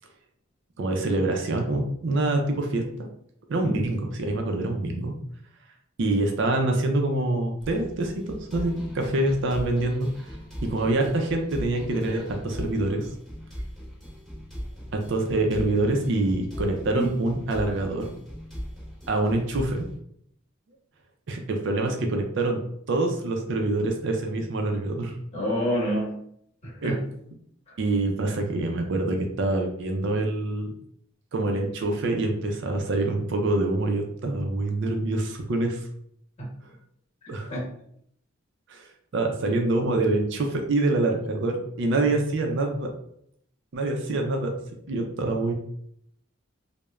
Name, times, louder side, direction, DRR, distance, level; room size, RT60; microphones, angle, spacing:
voice 1, 0.8-3.1 3.5-5.1 6.0-10.1 10.7-13.1 14.9-18.1 19.1-19.9 21.3-22.6 22.9-25.1 26.8-26.9 27.8-30.7 31.3-35.8 37.3-37.5 38.7-38.9 39.1-42.9 43.7-44.5 44.9-45.5, right 2 dB, 60° right, 3 dB, 0.4 m, -25 dB
sound 1, 7.6-20.0, equal, ahead, 0.8 m, -39 dB
voice 2, 25.3-26.2 26.6-27.0 36.4-36.5 37.5-37.8, equal, 30° left, -5 dB, 1.1 m, -28 dB
3.0 x 2.1 x 2.3 m, 0.70 s
head